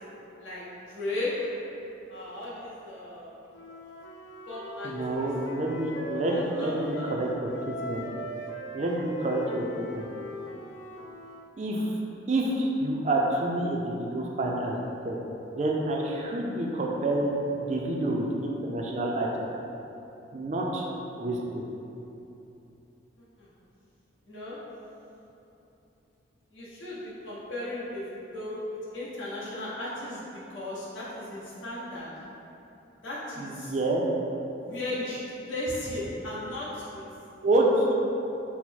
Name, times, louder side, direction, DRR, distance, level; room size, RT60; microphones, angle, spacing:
voice 1, 0.4-1.5 2.1-3.3 4.5-5.3 6.3-7.2 23.4-23.5 24.3-24.6 26.5-32.1 33.0-33.7 34.6-37.0, left 1 dB, 75° left, -9 dB, 1.1 m, -36 dB
Wind instrument woodwind instrument, 3.5-7.2 7.5-11.5, left 1 dB, 60° left, 0.3 m, -40 dB
voice 2, 4.8-8.0 8.7-10.1 11.6-12.0 12.3-14.8 15.0-15.2 15.5-19.3 20.3-20.9 21.2-21.6 33.4-34.0 37.4-37.9, right 1 dB, 35° right, -1 dB, 0.3 m, -28 dB
4.2 x 2.0 x 4.5 m, 2.9 s
head